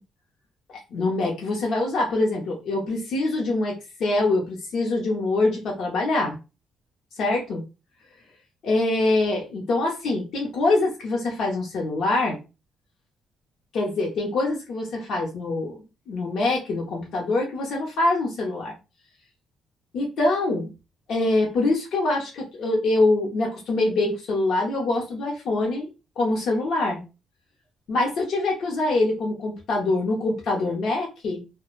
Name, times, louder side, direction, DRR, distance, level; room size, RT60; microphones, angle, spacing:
voice 1, 0.7-3.7 4.0-6.4 7.2-7.6 8.6-12.4 13.7-15.8 16.1-18.7 19.9-20.7 21.1-25.9 26.2-27.0 27.9-31.4, left 2 dB, 70° left, -1 dB, 0.7 m, -24 dB
2.4 x 2.1 x 3.0 m, 0.29 s
cardioid pair, 90°, 0 cm